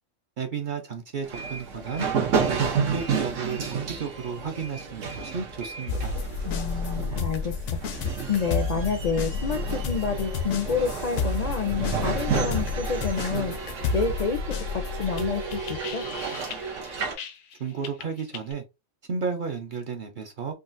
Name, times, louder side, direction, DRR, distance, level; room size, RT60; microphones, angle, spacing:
voice 1, 0.4-2.1 2.5-6.1 17.6-18.6 19.1-20.5, right 6 dB, 55° right, 0.6 m, -32 dB
sound 1, 1.2-17.1, right 5 dB, 85° right, 1.2 m, -31 dB
sound 2, 5.9-17.5 17.8-18.5, left 4 dB, 80° left, 0.9 m, -31 dB
voice 2, 6.4-14.4 14.7-16.0, left 5 dB, 55° left, 0.4 m, -29 dB
3.7 x 2.3 x 2.5 m
omnidirectional pair, 1.3 m